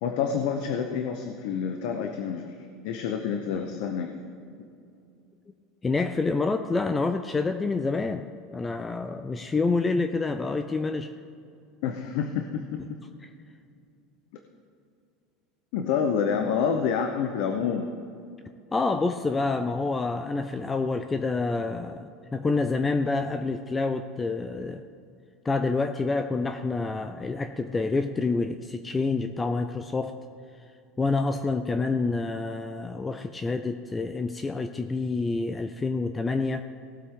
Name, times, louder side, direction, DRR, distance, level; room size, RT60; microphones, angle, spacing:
voice 1, 0.0-2.5 2.8-4.1 11.8-13.0 15.7-17.9, left 7 dB, 70° left, 5 dB, 0.9 m, -28 dB
voice 2, 5.8-8.2 8.5-11.1 13.2-13.3 18.7-24.8 25.4-30.2 31.0-36.6, left 3 dB, 15° left, 8 dB, 0.4 m, -27 dB
18.0 x 8.0 x 3.8 m, 2.5 s
supercardioid pair, 140°, 0 cm